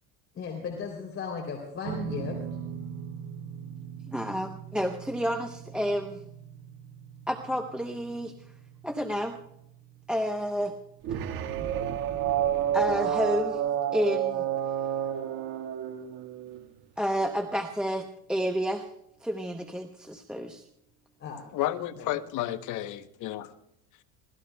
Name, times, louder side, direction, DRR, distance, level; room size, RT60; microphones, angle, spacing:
voice 1, 0.3-2.4 21.2-21.5 22.0-22.2, left 6 dB, 35° left, 0 dB, 3.2 m, -36 dB
sound 1, 1.8-14.4, right 8 dB, 90° right, 1.2 m, -43 dB
voice 2, 4.1-6.2 7.3-8.3 8.8-9.4 10.1-10.7 12.7-13.6 13.9-14.5 17.0-18.8 19.2-20.6, equal, ahead, 5 dB, 0.8 m, -30 dB
sound 2, 11.0-16.6, right 9 dB, 60° right, 1.8 m, -29 dB
voice 3, 21.5-23.5, left 13 dB, 50° left, 10 dB, 1.0 m, -32 dB
25.5 x 18.0 x 2.2 m, 0.76 s
cardioid pair, 135°, 38 cm